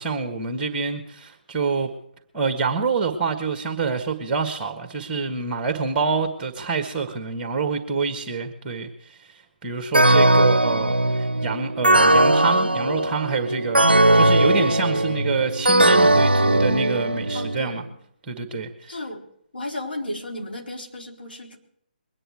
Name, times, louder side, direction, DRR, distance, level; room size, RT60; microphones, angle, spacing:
voice 1, 0.0-1.9 2.3-17.8 18.3-18.9, right 4 dB, 15° right, 6 dB, 1.6 m, -27 dB
sound 1, 9.9-17.6, right 1 dB, 85° right, 0.4 m, -18 dB
voice 2, 17.3-18.0 18.9-19.2 19.5-21.6, left 1 dB, 75° left, -1 dB, 4.1 m, -34 dB
22.5 x 10.0 x 4.8 m, 0.69 s
figure-of-eight pair, 140°, 5 cm